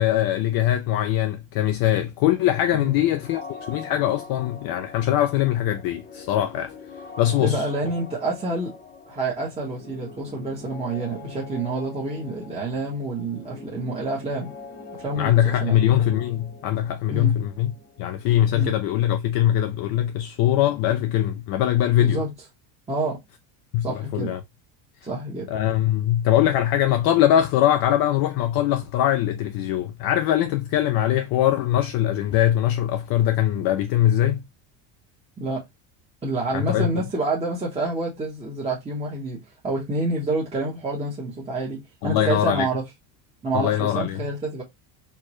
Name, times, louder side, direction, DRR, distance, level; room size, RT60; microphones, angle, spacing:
voice 1, 0.0-6.7 7.2-7.7 15.2-17.7 18.0-22.2 23.7-24.4 25.5-34.4 36.5-36.9 42.0-42.7 43.5-44.3, left 12 dB, 50° left, 0.5 m, -22 dB
sound 1, 2.3-19.9, left 4 dB, 20° left, 0.8 m, -43 dB
voice 2, 7.4-8.7 9.1-14.5 15.0-15.8 17.1-17.3 18.5-18.7 22.0-22.3 22.9-23.2 23.8-24.3 25.0-25.5 35.4-35.6 36.2-39.4 39.6-42.8 43.4-44.6, right 2 dB, 15° right, 0.9 m, -28 dB
4.5 x 2.2 x 3.0 m
cardioid pair, 130°, 49 cm